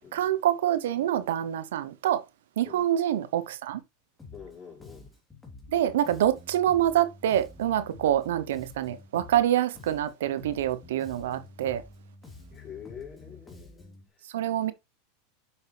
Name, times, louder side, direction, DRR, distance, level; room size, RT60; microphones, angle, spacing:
voice 1, 0.1-2.2 2.6-3.8 5.7-11.8 14.3-14.7, right 11 dB, 80° right, 0.8 m, -26 dB
Bass guitar, 4.2-4.6 4.8-9.5 9.8-14.1, left 3 dB, 10° left, 3.2 m, -49 dB
voice 2, 4.3-5.1 12.5-14.2, left 7 dB, 30° left, 4.9 m, -46 dB
7.1 x 6.7 x 3.3 m
hypercardioid pair, 110°, 0 cm